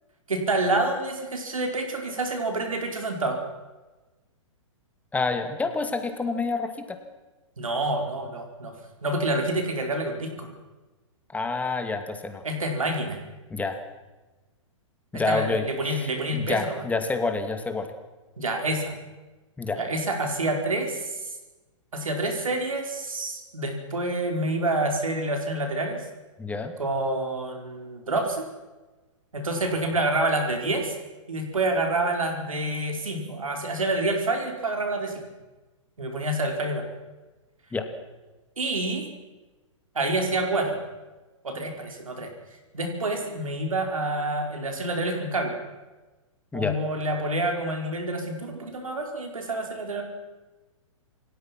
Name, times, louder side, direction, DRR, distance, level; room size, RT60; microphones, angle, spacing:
voice 1, 0.3-3.4 7.6-8.7 9.0-10.5 12.4-13.2 15.1-16.8 18.4-18.9 19.7-21.3 21.9-26.0 26.8-28.4 29.3-30.9 31.3-35.3 36.0-36.9 38.6-39.1 39.9-40.8 41.4-42.3 42.7-45.6 46.5-50.0, right 2 dB, 90° right, 4 dB, 4.7 m, -27 dB
voice 2, 5.1-7.0 11.3-12.4 13.5-13.8 15.1-17.9 19.6-19.8 26.4-26.7 37.7-37.9 46.5-46.8, left 3 dB, 10° left, 7 dB, 2.4 m, -28 dB
28.5 x 18.5 x 6.0 m, 1.2 s
hypercardioid pair, 125°, 17 cm